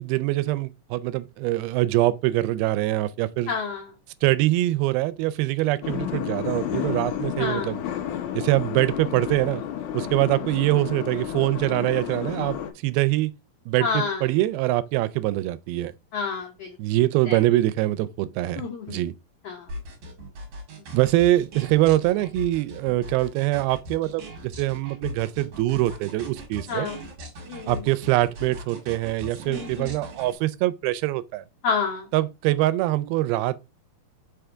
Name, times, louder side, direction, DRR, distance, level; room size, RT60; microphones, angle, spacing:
voice 1, 0.0-3.5 4.2-7.8 8.3-9.6 9.9-12.6 12.8-13.3 13.7-15.9 16.8-19.1 20.9-26.9 27.7-31.4 32.1-33.7, right 16 dB, 85° right, 2.4 m, -24 dB
voice 2, 3.5-3.9 7.4-7.7 13.8-14.3 16.1-16.8 17.3-17.4 18.6-19.0 19.4-19.7 26.7-27.0 27.5-27.8 29.5-29.9 31.6-32.1, left 5 dB, 85° left, 1.4 m, -29 dB
sound 1, 5.8-12.7, left 10 dB, 70° left, 2.1 m, -31 dB
sound 2, 19.7-30.3, equal, 55° right, 2.8 m, -39 dB
5.7 x 3.4 x 4.9 m
omnidirectional pair, 4.3 m